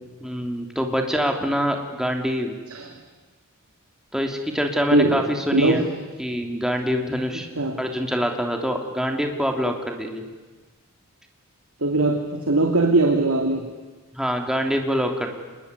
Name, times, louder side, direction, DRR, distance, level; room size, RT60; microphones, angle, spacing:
voice 1, 0.2-2.5 4.1-5.9 6.2-7.5 7.8-10.2 14.1-15.3, equal, ahead, 3 dB, 2.9 m, -25 dB
voice 2, 4.9-5.2 5.5-5.9 7.6-7.8 11.8-13.7, right 2 dB, 65° right, 3 dB, 2.6 m, -20 dB
27.0 x 21.5 x 9.8 m, 1.3 s
head